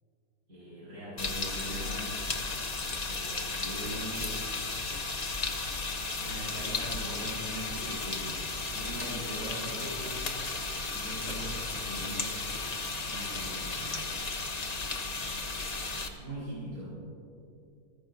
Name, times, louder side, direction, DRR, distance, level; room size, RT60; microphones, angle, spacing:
voice 1, 0.5-2.2 3.1-4.2 6.2-10.2 10.9-12.3 12.9-14.0 16.2-17.0, equal, 75° right, -9 dB, 5.1 m, -41 dB
sound 1, 1.2-16.1, left 3 dB, 30° left, 0.9 m, -34 dB
27.0 x 14.0 x 2.6 m, 2.5 s
omnidirectional pair, 1.6 m